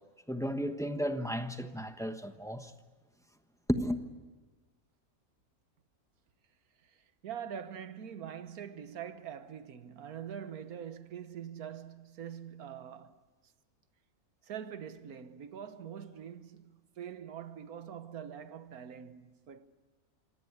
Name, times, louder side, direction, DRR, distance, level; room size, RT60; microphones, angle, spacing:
voice 1, 0.3-2.7 3.7-4.0, equal, 5° left, 1.0 m, -33 dB
voice 2, 7.2-13.2 14.4-19.7, right 8 dB, 85° right, 1.6 m, -44 dB
26.5 x 17.5 x 9.8 m
omnidirectional pair, 1.5 m